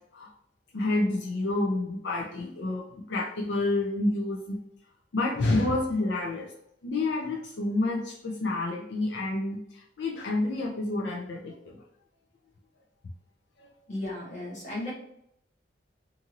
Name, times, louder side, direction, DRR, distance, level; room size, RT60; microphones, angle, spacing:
voice 1, 0.7-4.6 5.1-6.5 6.8-11.8 13.6-13.7, left 2 dB, 85° left, -1 dB, 0.5 m, -29 dB
voice 2, 13.9-14.9, left 1 dB, 45° left, -6 dB, 1.3 m, -35 dB
2.6 x 2.5 x 2.9 m, 0.73 s
head